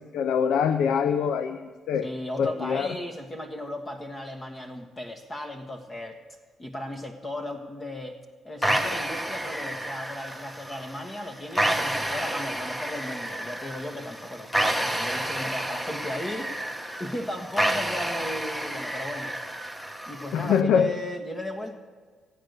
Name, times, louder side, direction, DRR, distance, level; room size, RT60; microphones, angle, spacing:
voice 1, 0.0-1.6 1.9-2.1 2.4-2.9 20.3-20.9, left 7 dB, 80° left, 11 dB, 0.6 m, -24 dB
voice 2, 2.0-6.2 6.6-8.2 8.4-19.3 20.1-21.8, left 1 dB, 25° left, 5 dB, 1.3 m, -36 dB
sound 1, 8.6-20.6, right 1 dB, 5° left, 1.0 m, -30 dB
16.0 x 9.3 x 6.7 m, 1.5 s
cardioid pair, 90°, 0 cm